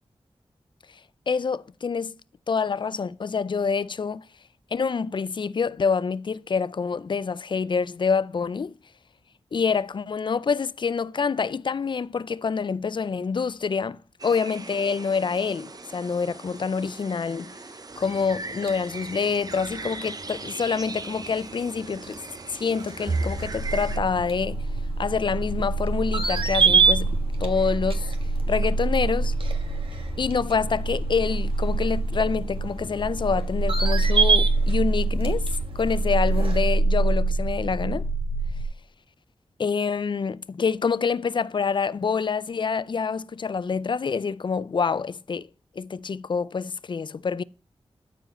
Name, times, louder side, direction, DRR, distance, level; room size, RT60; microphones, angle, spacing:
voice 1, 1.3-2.2 2.5-4.3 4.7-8.8 9.5-17.6 18.0-22.2 22.5-24.7 25.0-28.1 28.5-29.3 30.2-38.1 39.6-45.5 45.8-47.4, left 5 dB, 50° left, 0.4 m, -26 dB
sound 1, 14.2-24.0, right 3 dB, 35° right, 0.7 m, -40 dB
sound 2, 17.9-36.6, right 5 dB, 55° right, 1.5 m, -30 dB
sound 3, 23.3-38.7, right 2 dB, 80° left, 4.2 m, -26 dB
14.0 x 4.8 x 4.3 m
wide cardioid pair, 85°, 11 cm